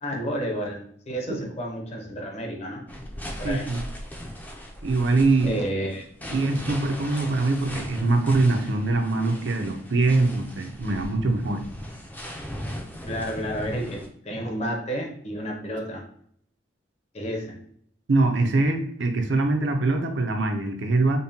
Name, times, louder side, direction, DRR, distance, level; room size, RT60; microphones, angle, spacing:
voice 1, 0.0-2.9 3.4-3.7 5.4-6.3 13.1-16.0 17.1-17.5, equal, 35° left, 0 dB, 0.8 m, -31 dB
sound 1, 2.9-14.1, equal, 10° left, 0.5 m, -38 dB
voice 2, 3.4-3.8 4.8-5.5 6.3-11.6 18.1-21.2, right 2 dB, 70° right, 4 dB, 0.6 m, -23 dB
5.3 x 2.2 x 2.7 m, 0.64 s
head